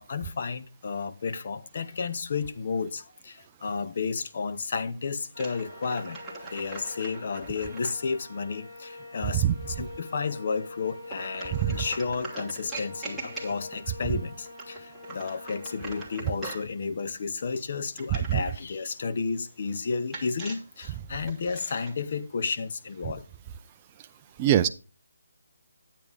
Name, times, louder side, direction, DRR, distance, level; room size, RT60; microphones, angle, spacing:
voice 1, 0.0-23.2, left 5 dB, 40° left, 0.7 m, -32 dB
sound 1, 5.3-16.1, left 2 dB, 80° left, 4.8 m, -44 dB
sound 2, 5.3-8.0 11.1-13.9 14.4-16.7 18.0-18.6 20.1-21.9, right 3 dB, ahead, 1.4 m, -42 dB
voice 2, 11.5-11.8 18.3-18.4 24.4-24.7, right 11 dB, 20° right, 0.3 m, -23 dB
9.5 x 8.4 x 3.5 m
hypercardioid pair, 170°, 0 cm